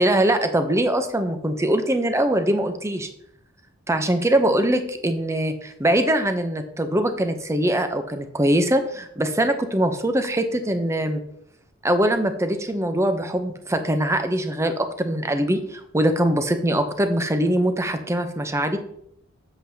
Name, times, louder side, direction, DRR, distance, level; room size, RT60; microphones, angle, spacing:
voice 1, 0.0-3.1 3.9-11.2 11.8-18.8, right 1 dB, 15° right, 7 dB, 0.7 m, -22 dB
7.7 x 7.6 x 2.8 m, 0.71 s
head